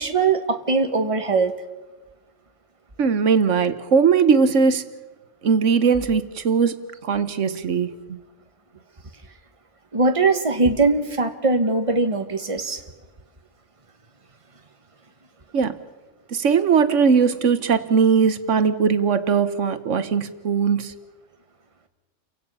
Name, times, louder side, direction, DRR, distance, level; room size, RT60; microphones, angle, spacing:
voice 1, 0.0-1.5 9.9-12.8, right 3 dB, 25° right, 1.4 m, -21 dB
voice 2, 3.0-4.9 5.4-8.2 15.5-15.8 16.3-20.9, right 6 dB, 75° right, 1.4 m, -20 dB
30.0 x 17.0 x 5.5 m
omnidirectional pair, 1.3 m